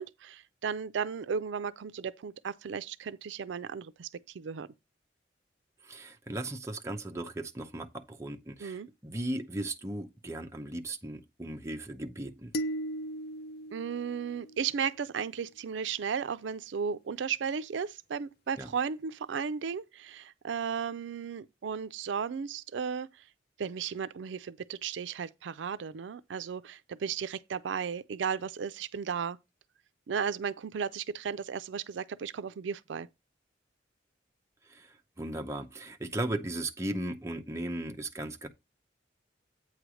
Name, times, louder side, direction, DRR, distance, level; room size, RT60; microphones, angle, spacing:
voice 1, 0.0-4.1 4.3-4.7 8.6-8.9 13.7-23.1 23.6-29.4 30.1-33.1, right 6 dB, 75° right, 0.4 m, -35 dB
voice 2, 5.8-12.5 18.6-18.7 34.6-38.5, right 1 dB, 15° right, 0.7 m, -37 dB
sound 1, 12.5-15.0, right 1 dB, 55° left, 0.5 m, -37 dB
8.4 x 3.3 x 6.2 m
head